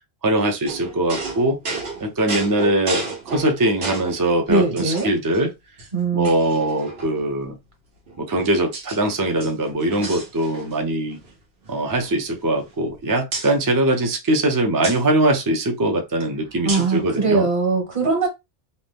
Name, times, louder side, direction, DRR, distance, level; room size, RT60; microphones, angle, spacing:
voice 1, 0.2-1.6 2.0-5.5 6.1-7.6 8.2-11.2 11.7-17.5, right 1 dB, 30° right, 0.4 m, -21 dB
sound 1, 0.7-4.2 4.8-5.4 5.8-5.9 6.2-7.3 8.1-9.0 9.3-10.9 11.1-11.3 11.6-12.9 13.3-13.5 14.8-15.0 16.7-17.0, right 3 dB, 85° right, 1.2 m, -32 dB
voice 2, 4.5-5.2 5.9-6.3 16.6-18.3, right 4 dB, 55° right, 1.4 m, -21 dB
2.7 x 2.2 x 3.4 m
omnidirectional pair, 1.0 m